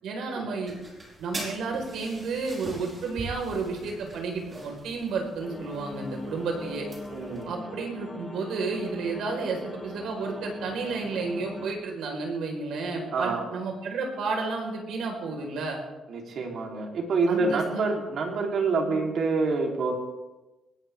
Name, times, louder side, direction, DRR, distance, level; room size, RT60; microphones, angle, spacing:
voice 1, 0.0-0.8 1.2-6.9 7.5-15.8 17.3-17.8 18.9-19.0, right 4 dB, 75° right, 2 dB, 4.6 m, -32 dB
sound 1, 0.7-7.4, right 1 dB, 25° right, 4.6 m, -42 dB
sound 2, 5.4-11.7, left 2 dB, 15° left, 2.3 m, -41 dB
voice 2, 7.1-7.7 13.1-13.4 16.1-19.9, right 3 dB, 55° right, 1 dB, 3.5 m, -27 dB
20.5 x 18.5 x 3.6 m, 1.1 s
cardioid pair, 145°, 0 cm